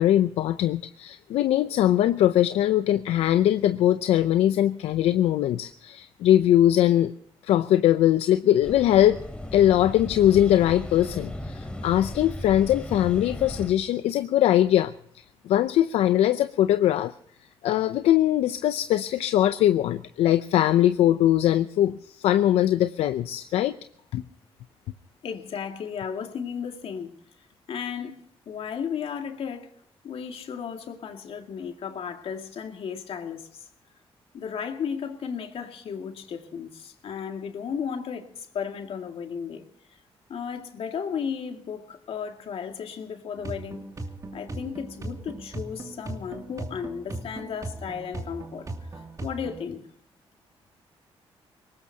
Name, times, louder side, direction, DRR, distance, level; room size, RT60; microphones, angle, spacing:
voice 1, 0.0-7.1 7.4-9.2 9.5-14.9 15.5-17.1 17.6-23.7 24.1-24.2, left 12 dB, 85° left, 0.6 m, -21 dB
sound 1, 8.6-13.7, left 1 dB, 10° left, 3.1 m, -36 dB
voice 2, 25.2-27.2 27.7-29.7 30.0-33.7 34.3-39.6 40.3-43.8 44.3-48.7 49.2-49.9, left 7 dB, 70° left, 2.2 m, -34 dB
sound 2, 43.4-49.6, right 2 dB, 35° right, 2.6 m, -38 dB
23.0 x 19.5 x 2.8 m
cardioid pair, 70°, 10 cm